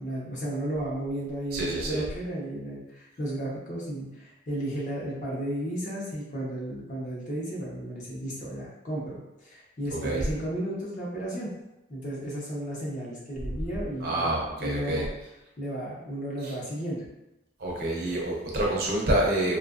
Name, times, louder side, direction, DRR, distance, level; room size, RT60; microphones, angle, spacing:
voice 1, 0.0-11.5 11.9-15.1 15.6-17.0, right 1 dB, 40° left, -5 dB, 0.7 m, -34 dB
voice 2, 1.5-2.0 10.0-10.2 14.0-15.0 16.4-16.5 17.6-19.6, right 1 dB, 50° right, -2 dB, 0.6 m, -27 dB
2.7 x 2.4 x 2.4 m, 0.92 s
head